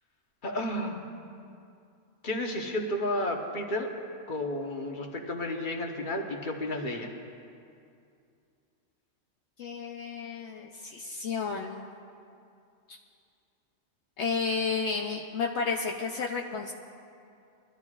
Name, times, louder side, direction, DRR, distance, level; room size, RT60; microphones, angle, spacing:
voice 1, 0.4-1.0 2.2-3.9 4.3-7.1, left 1 dB, 45° left, 2 dB, 1.3 m, -32 dB
voice 2, 9.6-11.8 14.2-16.7, left 5 dB, 70° left, 1 dB, 1.0 m, -32 dB
23.0 x 13.0 x 2.4 m, 2.5 s
omnidirectional pair, 1.2 m